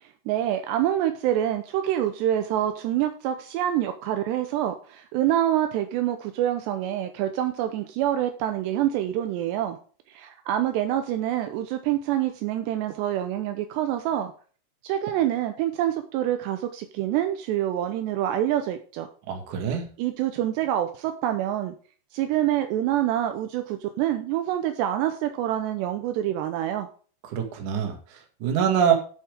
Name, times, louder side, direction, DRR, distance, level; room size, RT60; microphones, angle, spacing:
voice 1, 0.0-9.8 10.1-14.3 14.8-19.1 20.0-21.7 22.1-26.9, right 12 dB, 80° right, 7 dB, 2.6 m, -26 dB
voice 2, 19.3-19.8 27.3-28.9, right 8 dB, 50° right, 4 dB, 2.7 m, -25 dB
12.0 x 7.6 x 3.5 m, 0.41 s
omnidirectional pair, 5.8 m